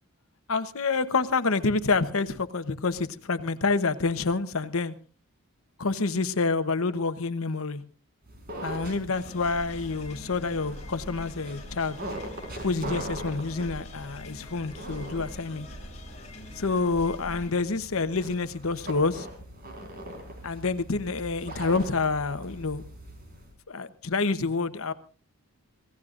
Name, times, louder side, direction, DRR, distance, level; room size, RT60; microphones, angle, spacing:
voice 1, 0.5-5.0 5.8-7.8 8.6-12.0 12.6-15.7 16.5-19.3 20.4-22.8 23.7-24.9, left 4 dB, 70° left, 1.0 m, -28 dB
sound 1, 8.2-23.5, right 1 dB, 45° right, 4.5 m, -41 dB
sound 2, 9.1-17.5, left 1 dB, 30° left, 4.6 m, -44 dB
25.5 x 17.0 x 2.5 m
head